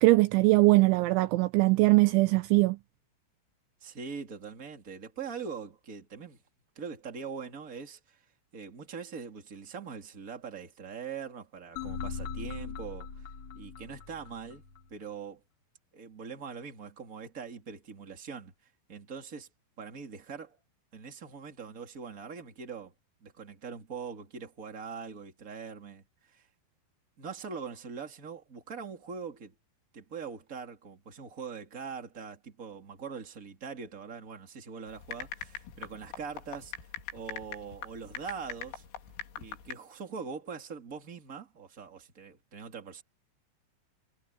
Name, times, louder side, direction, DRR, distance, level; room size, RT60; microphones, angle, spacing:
voice 1, 0.0-2.8, right 22 dB, 85° right, 2.8 m, -21 dB
voice 2, 3.8-6.4 6.7-8.2 8.5-13.3 13.5-14.6 14.9-15.4 15.9-18.5 18.9-19.5 19.8-20.6 20.9-22.9 23.2-26.5 27.2-29.5 29.9-38.8 39.4-43.0, right 6 dB, 20° right, 2.5 m, -42 dB
sound 1, 11.8-14.8, left 5 dB, 30° left, 6.5 m, -40 dB
sound 2, 34.9-39.7, left 8 dB, 90° left, 6.0 m, -42 dB
omnidirectional pair, 5.8 m